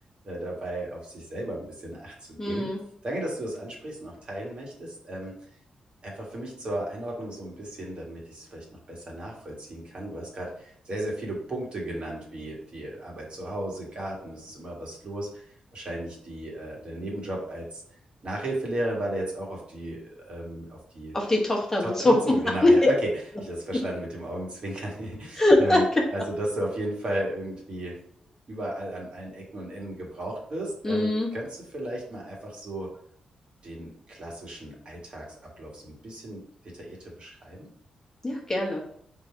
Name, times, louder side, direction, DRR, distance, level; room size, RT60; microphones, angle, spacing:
voice 1, 0.2-2.7 3.0-5.3 6.0-17.8 18.2-21.2 21.8-23.1 23.4-28.0 28.5-32.9 33.6-36.4 36.7-37.7, right 1 dB, 50° right, -2 dB, 1.5 m, -35 dB
voice 2, 2.4-2.8 21.1-22.2 22.6-22.9 25.4-26.0 30.8-31.3 38.2-38.8, left 1 dB, 20° left, -2 dB, 1.0 m, -21 dB
3.8 x 2.7 x 4.5 m, 0.63 s
cardioid pair, 90°, 2 cm